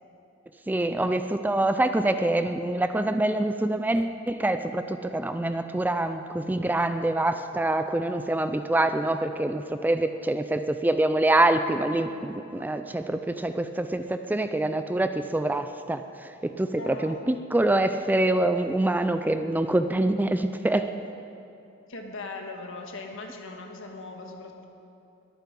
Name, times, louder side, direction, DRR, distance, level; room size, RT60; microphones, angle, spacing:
voice 1, 0.7-20.9, right 1 dB, 10° right, 9 dB, 0.3 m, -25 dB
voice 2, 16.8-17.2 21.9-24.6, left 3 dB, 65° left, 3 dB, 1.6 m, -39 dB
21.5 x 9.3 x 5.3 m, 2.8 s
head